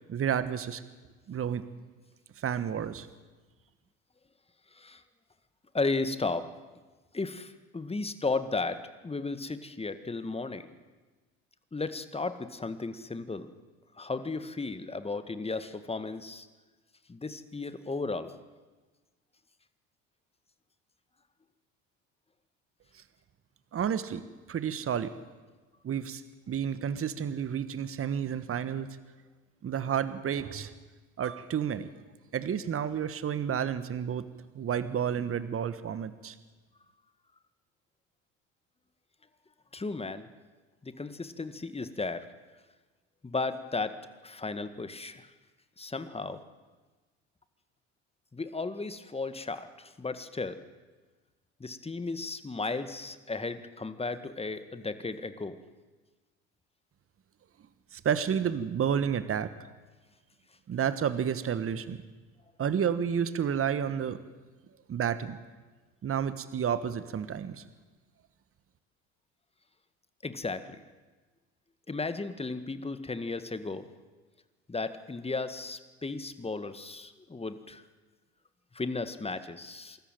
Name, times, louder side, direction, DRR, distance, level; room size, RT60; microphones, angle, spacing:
voice 1, 0.1-0.8 1.3-1.6 2.4-3.1 23.7-24.2 24.5-25.1 25.8-26.2 26.5-29.0 29.6-30.7 31.2-31.9 32.3-34.3 34.5-36.4 57.9-59.5 60.7-62.0 62.6-64.2 64.9-65.4 66.0-67.6, right 8 dB, 35° right, 13 dB, 1.4 m, -30 dB
voice 2, 5.7-6.5 7.1-10.7 11.7-13.5 14.0-16.5 17.1-18.3 39.7-40.3 40.8-42.3 43.2-44.0 44.2-45.3 45.8-46.4 48.3-50.6 51.6-55.6 70.2-70.8 71.9-73.9 74.7-77.8 78.7-80.0, left 3 dB, 15° left, 11 dB, 1.8 m, -34 dB
25.0 x 13.5 x 9.1 m, 1.3 s
hypercardioid pair, 70°, 38 cm